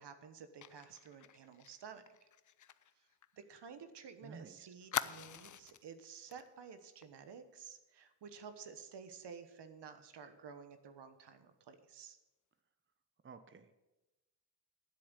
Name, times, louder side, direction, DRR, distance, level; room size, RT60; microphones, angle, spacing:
voice 1, 0.0-2.3 3.0-3.1 3.3-12.2, right 6 dB, 65° right, 9 dB, 1.3 m, -52 dB
Fire, 0.6-4.1 4.3-4.4 4.9-5.9 6.3-6.5 6.8-7.0, left 10 dB, 45° left, 0.6 m, -44 dB
voice 2, 4.2-4.7 13.2-13.7, right 5 dB, 25° right, 10 dB, 0.9 m, -53 dB
10.0 x 7.7 x 8.2 m, 1.0 s
supercardioid pair, 55°, 44 cm